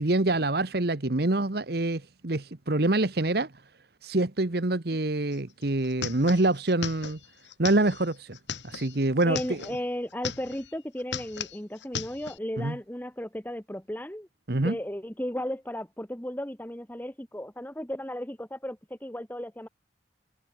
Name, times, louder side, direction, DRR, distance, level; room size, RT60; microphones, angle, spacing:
voice 1, 0.0-3.5 4.0-7.2 7.6-8.4 8.6-9.6 12.6-12.8 14.5-14.8, right 2 dB, 60° right, 1.3 m, -26 dB
sound 1, 5.3-5.4 5.6-9.8 10.1-10.7 11.0-12.4, left 6 dB, 85° left, 7.1 m, -37 dB
voice 2, 9.2-14.3 14.6-19.7, equal, 10° left, 1.8 m, -35 dB
head